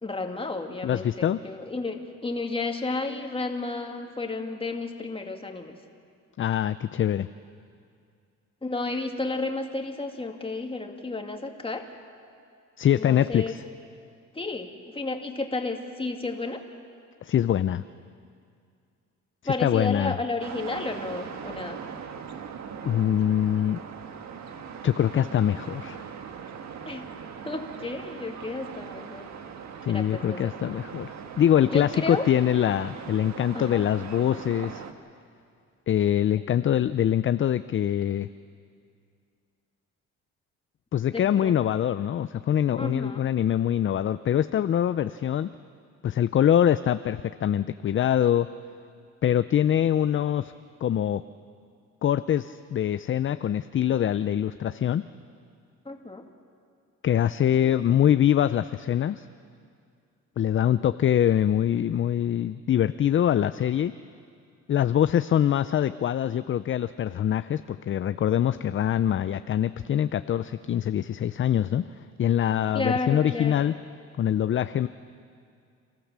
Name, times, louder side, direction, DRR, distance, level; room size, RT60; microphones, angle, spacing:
voice 1, 0.0-5.8 8.6-11.9 12.9-13.5 14.3-16.6 19.4-21.8 26.8-27.1 27.4-29.3 29.9-30.5 31.7-32.3 33.5-33.8 36.4-36.6 41.1-41.6 42.8-43.2 55.9-56.3 57.6-57.7 72.7-73.7, left 3 dB, 20° left, 4 dB, 2.2 m, -32 dB
voice 2, 0.8-1.4 6.4-7.3 12.8-13.6 17.2-17.8 19.4-20.1 22.8-23.8 24.8-26.0 29.8-34.8 35.9-38.3 40.9-45.5 46.0-48.5 49.2-50.5 50.8-51.2 52.0-55.0 57.0-59.2 60.4-63.9 64.7-71.8 72.2-73.7 74.2-74.9, left 10 dB, 40° left, 13 dB, 0.5 m, -24 dB
sound 1, 20.4-34.9, right 7 dB, 65° right, 1.5 m, -40 dB
29.5 x 13.5 x 7.4 m, 2.3 s
cardioid pair, 90°, 30 cm